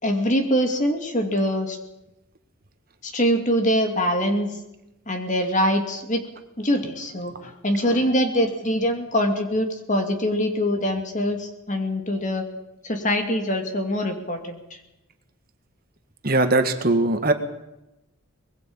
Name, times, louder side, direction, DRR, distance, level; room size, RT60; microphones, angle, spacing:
voice 1, 0.0-1.8 3.0-4.6 5.1-6.2 6.6-12.5 12.8-14.6, equal, 35° left, 5 dB, 2.5 m, -23 dB
voice 2, 16.2-17.3, right 2 dB, 45° right, 7 dB, 1.6 m, -20 dB
23.5 x 21.0 x 5.5 m, 0.92 s
head